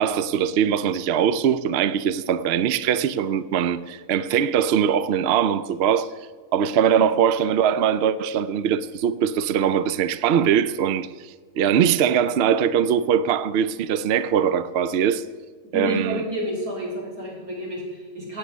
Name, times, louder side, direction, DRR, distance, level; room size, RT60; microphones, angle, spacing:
voice 1, 0.0-6.1 6.5-15.2 15.7-16.2, right 8 dB, 65° right, 0.7 m, -21 dB
voice 2, 15.7-18.4, equal, 85° right, 4.3 m, -30 dB
16.5 x 8.8 x 6.2 m
omnidirectional pair, 1.5 m